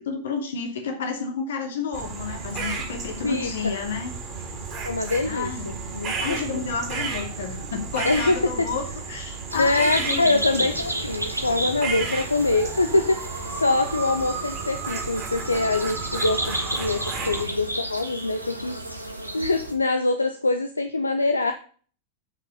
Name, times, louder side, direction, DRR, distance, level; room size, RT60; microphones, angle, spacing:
voice 1, 0.1-4.1 5.2-5.8 6.2-10.8, left 5 dB, 60° left, 5 dB, 2.5 m, -31 dB
sound 1, 1.9-17.4, right 4 dB, 35° right, 3.6 m, -33 dB
voice 2, 4.9-6.7 8.0-8.7 9.5-18.8 19.3-21.5, left 2 dB, 80° left, 8 dB, 0.7 m, -24 dB
sound 2, 9.5-19.7, right 1 dB, 85° right, 1.4 m, -33 dB
9.8 x 5.9 x 5.2 m, 0.42 s
figure-of-eight pair, 90°, 0 cm